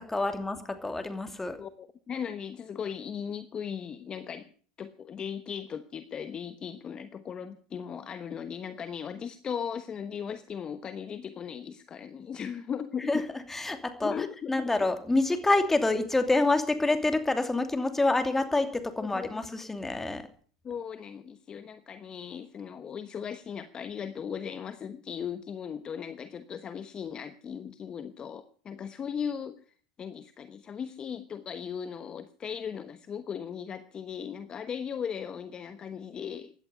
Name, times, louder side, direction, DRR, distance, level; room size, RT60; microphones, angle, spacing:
voice 1, 0.0-1.6 13.1-20.3, left 2 dB, 10° left, 8 dB, 2.7 m, -27 dB
voice 2, 1.6-4.5 4.8-13.2 14.0-14.5 19.0-19.3 20.6-36.5, left 7 dB, 30° left, 11 dB, 1.1 m, -37 dB
16.5 x 11.0 x 6.8 m, 0.44 s
hypercardioid pair, 105°, 3 cm